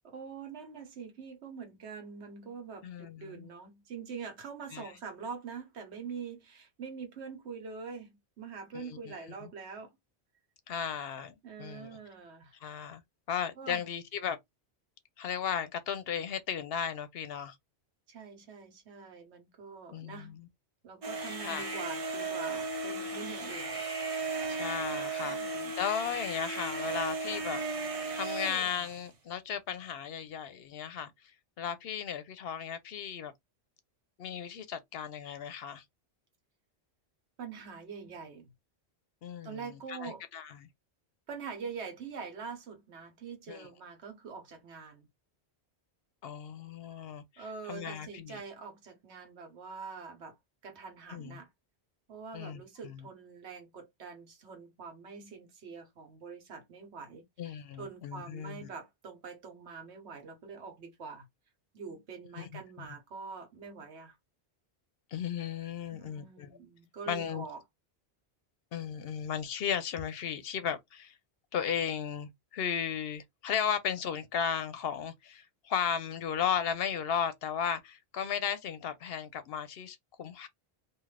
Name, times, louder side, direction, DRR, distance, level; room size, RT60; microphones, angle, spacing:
voice 1, 0.0-9.9 11.4-12.6 13.6-13.8 18.1-20.4 20.8-23.7 25.2-25.7 37.4-38.5 39.4-40.2 41.3-45.1 47.4-50.4 50.6-51.5 52.1-61.3 61.7-64.2 65.9-67.6, right 5 dB, 85° right, 1.3 m, -44 dB
voice 2, 2.8-3.5 4.7-4.9 8.7-9.1 9.4-9.5 10.7-12.0 12.6-13.0 13.3-14.4 15.2-17.6 19.9-20.5 21.4-21.7 24.5-33.3 34.2-35.8 39.2-40.7 43.5-43.7 46.2-48.4 51.1-51.4 52.3-53.1 57.4-58.7 62.4-62.9 65.1-66.5 67.1-67.5 68.7-71.2 71.5-80.5, left 8 dB, 70° left, 0.8 m, -35 dB
sound 1, 21.0-29.0, right 3 dB, 40° right, 0.6 m, -36 dB
2.6 x 2.4 x 3.2 m
omnidirectional pair, 1.1 m